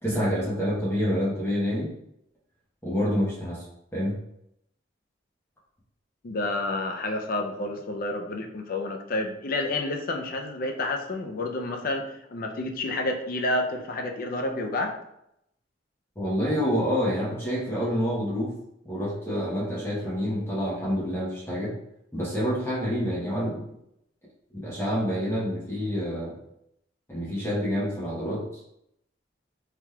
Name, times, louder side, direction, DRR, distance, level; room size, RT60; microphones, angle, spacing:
voice 1, 0.0-1.9 2.8-3.7 3.9-4.1 16.2-18.6 18.8-21.8 22.1-23.6 24.5-26.3 27.1-28.6, equal, 15° left, -7 dB, 0.8 m, -27 dB
voice 2, 6.2-15.0, left 2 dB, 50° left, 4 dB, 0.4 m, -29 dB
3.4 x 2.9 x 2.2 m, 0.79 s
head